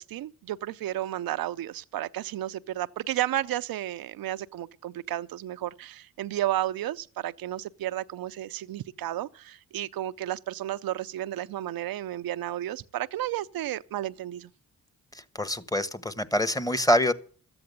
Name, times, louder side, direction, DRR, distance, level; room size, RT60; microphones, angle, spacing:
voice 1, 0.1-14.5, right 13 dB, 80° right, 0.6 m, -32 dB
voice 2, 15.1-17.1, equal, 10° left, 1.3 m, -25 dB
13.0 x 8.7 x 8.1 m
cardioid pair, 55°, 35 cm